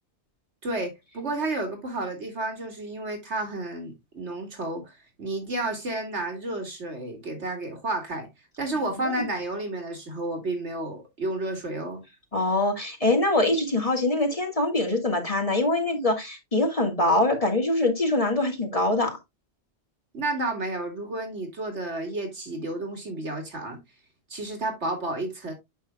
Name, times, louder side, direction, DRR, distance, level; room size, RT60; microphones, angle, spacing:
voice 1, 0.6-8.3 8.6-12.0 20.1-23.8 24.3-25.5, right 2 dB, 85° right, 2.8 m, -31 dB
voice 2, 12.3-19.2, left 2 dB, 30° left, 1.8 m, -24 dB
8.9 x 6.6 x 2.3 m
omnidirectional pair, 1.1 m